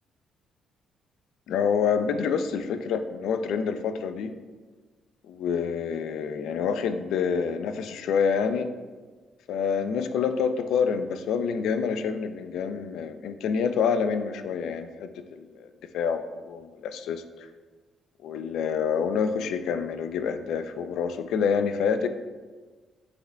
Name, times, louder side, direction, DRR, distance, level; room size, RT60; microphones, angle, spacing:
voice 1, 1.5-4.3 5.3-8.7 9.5-15.7 15.9-17.5 18.2-22.1, left 6 dB, 80° left, 9 dB, 0.4 m, -27 dB
8.4 x 5.2 x 2.2 m, 1.4 s
cardioid pair, 155°, 0 cm